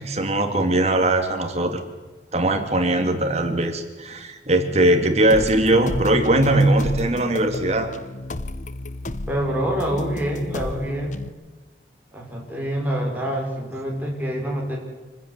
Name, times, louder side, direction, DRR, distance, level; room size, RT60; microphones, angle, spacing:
voice 1, 0.0-1.8 2.3-7.9, right 1 dB, 40° right, 6 dB, 2.6 m, -20 dB
sound 1, 5.3-11.3, left 2 dB, 45° left, 0.9 m, -32 dB
voice 2, 9.3-11.2 12.1-14.8, equal, 10° right, -1 dB, 5.8 m, -26 dB
26.5 x 15.0 x 9.7 m, 1.3 s
head